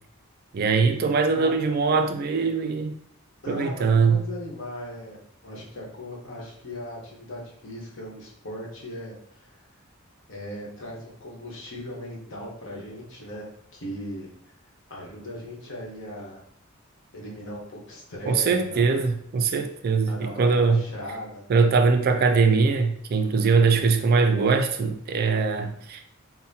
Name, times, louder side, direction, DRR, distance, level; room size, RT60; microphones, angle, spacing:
voice 1, 0.5-3.0 3.5-4.2 18.3-20.8 21.5-26.0, right 4 dB, 45° right, 6 dB, 0.3 m, -22 dB
voice 2, 1.3-2.0 3.4-5.2 5.4-9.6 10.3-14.3 14.9-16.4 17.1-19.1 20.1-21.5, equal, 60° left, -3 dB, 1.1 m, -38 dB
5.4 x 2.1 x 2.7 m, 0.68 s
head